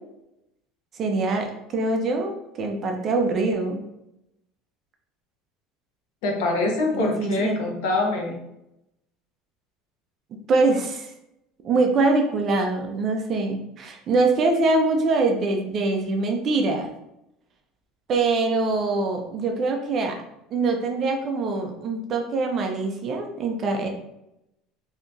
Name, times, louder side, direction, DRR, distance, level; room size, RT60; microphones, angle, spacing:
voice 1, 1.0-3.8 6.9-7.6 10.3-11.1 11.6-16.9 18.1-20.2 20.5-23.9, right 3 dB, 30° right, 3 dB, 0.4 m, -24 dB
voice 2, 6.2-8.3, left 2 dB, 75° left, 0 dB, 0.8 m, -24 dB
3.3 x 2.8 x 2.6 m, 0.85 s
cardioid pair, 175°, 0 cm